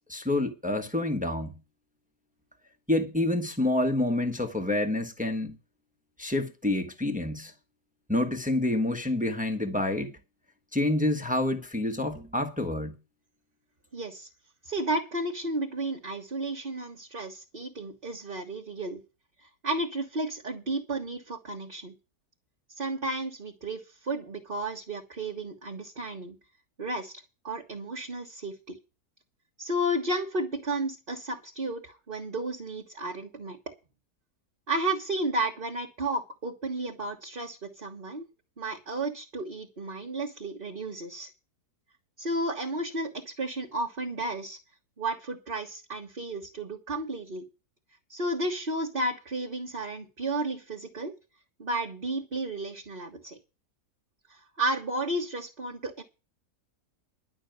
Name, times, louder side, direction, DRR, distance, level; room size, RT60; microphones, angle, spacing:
voice 1, 0.1-1.6 2.9-5.6 6.2-7.5 8.1-10.2 10.7-13.0, left 1 dB, 5° right, 1.2 m, -28 dB
voice 2, 13.9-14.3 14.6-19.0 19.6-21.9 22.8-26.4 26.8-28.8 29.6-33.6 34.7-38.2 38.6-41.3 42.2-44.6 45.0-47.4 48.1-51.1 51.6-53.4 54.3-56.0, right 2 dB, 35° right, 1.4 m, -33 dB
11.5 x 6.2 x 9.2 m
omnidirectional pair, 1.7 m